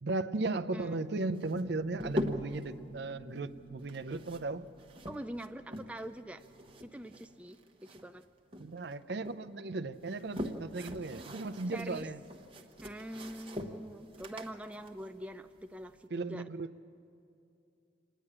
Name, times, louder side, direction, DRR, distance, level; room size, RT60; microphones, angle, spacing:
voice 1, 0.0-4.6 8.6-12.2 16.1-16.7, right 3 dB, 65° right, 10 dB, 0.6 m, -36 dB
sound 1, 1.4-7.3, right 3 dB, 40° left, 1.6 m, -54 dB
sound 2, 1.4-2.7 3.8-6.1 6.4-8.2 8.5-9.4 9.9-16.0, left 1 dB, 30° right, 1.0 m, -42 dB
voice 2, 5.1-6.4 6.8-8.2 11.7-12.1 12.8-16.5, right 1 dB, 5° right, 7 dB, 0.4 m, -44 dB
27.0 x 10.0 x 9.8 m, 2.6 s
head